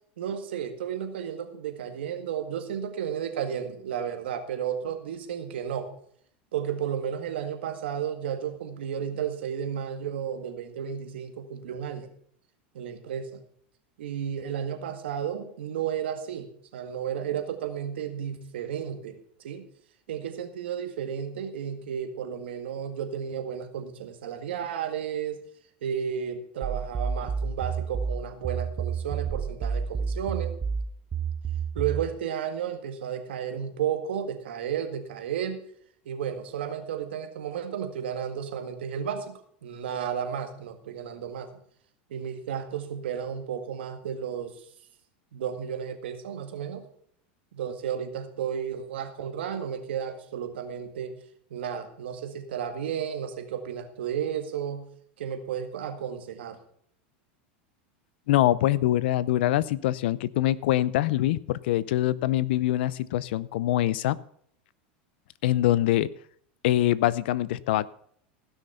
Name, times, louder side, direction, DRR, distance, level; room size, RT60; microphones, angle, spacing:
voice 1, 0.2-5.9 6.5-12.1 12.7-13.4 14.0-19.2 19.4-19.6 20.1-25.4 25.8-30.5 31.7-35.6 36.1-41.5 42.1-44.6 45.3-46.8 47.5-51.2 51.5-54.9 55.2-56.6, right 8 dB, 90° right, 7 dB, 1.8 m, -33 dB
sound 1, 26.6-32.1, right 6 dB, 20° right, 0.6 m, -30 dB
voice 2, 58.3-64.2 65.4-66.1 66.6-67.9, left 14 dB, 75° left, 20 dB, 0.6 m, -24 dB
16.0 x 6.5 x 5.6 m, 0.64 s
supercardioid pair, 130°, 6 cm